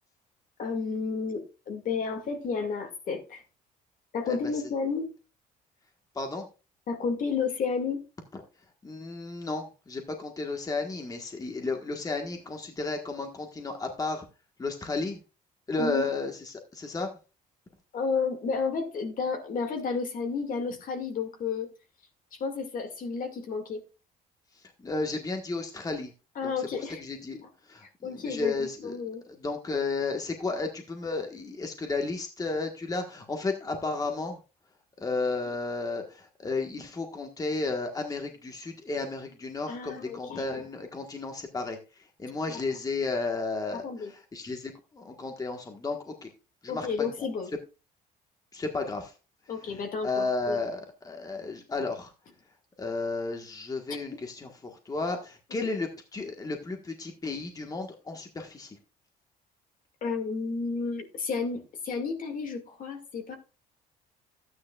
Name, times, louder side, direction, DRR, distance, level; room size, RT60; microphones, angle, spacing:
voice 1, 0.6-3.4 4.1-5.1 6.9-8.0 15.8-16.1 17.9-21.7 22.3-23.8 26.4-27.0 28.0-29.2 39.7-40.6 42.5-42.6 43.8-44.1 46.7-47.5 49.5-50.6 55.6-55.7 60.0-63.3, left 5 dB, 55° left, 2.2 m, -32 dB
voice 2, 6.1-6.5 8.3-8.4 8.8-14.3 14.6-15.2 15.7-17.1 24.5-26.1 26.4-27.4 27.6-28.9 29.3-34.4 35.0-46.3 46.6-47.3 48.5-49.1 50.0-52.1 52.8-58.8, left 3 dB, 20° left, 1.4 m, -33 dB
13.0 x 9.5 x 2.4 m
cardioid pair, 110°, 17 cm